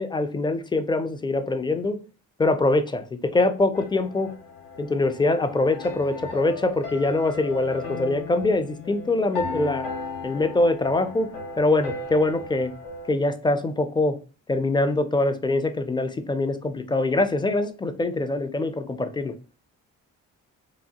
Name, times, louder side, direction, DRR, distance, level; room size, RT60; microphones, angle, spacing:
voice 1, 0.0-2.0 2.4-4.3 4.8-9.9 10.2-11.3 11.6-12.7 13.1-14.2 14.5-19.3, left 2 dB, 15° left, 0.4 m, -23 dB
sound 1, 3.7-13.1, left 4 dB, 85° left, 0.9 m, -36 dB
3.1 x 2.1 x 2.8 m
supercardioid pair, 50°, 38 cm